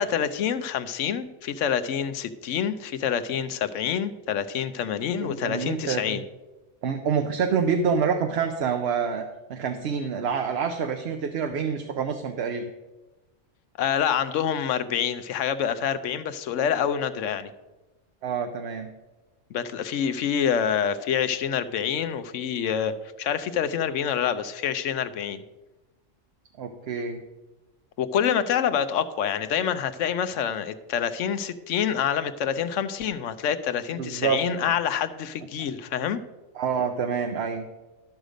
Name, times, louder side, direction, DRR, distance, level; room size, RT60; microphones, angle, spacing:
voice 1, 0.0-6.2 13.8-17.5 19.5-25.4 28.0-36.2, left 8 dB, 85° left, 12 dB, 1.0 m, -27 dB
voice 2, 5.2-6.2 6.8-9.2 9.5-12.7 18.2-18.9 26.6-27.2 34.0-34.4 36.5-37.7, right 6 dB, 65° right, 6 dB, 0.9 m, -27 dB
12.0 x 6.5 x 5.1 m, 1.1 s
omnidirectional pair, 1.3 m